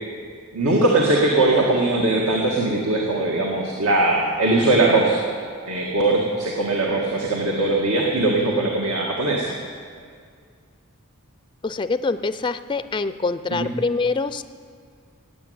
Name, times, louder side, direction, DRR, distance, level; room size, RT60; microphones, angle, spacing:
voice 1, 0.5-5.2 5.7-9.5 13.5-13.7, right 2 dB, 85° right, -2 dB, 1.8 m, -20 dB
voice 2, 11.6-14.4, left 3 dB, 20° left, 12 dB, 0.3 m, -25 dB
17.0 x 8.3 x 9.4 m, 2.1 s
head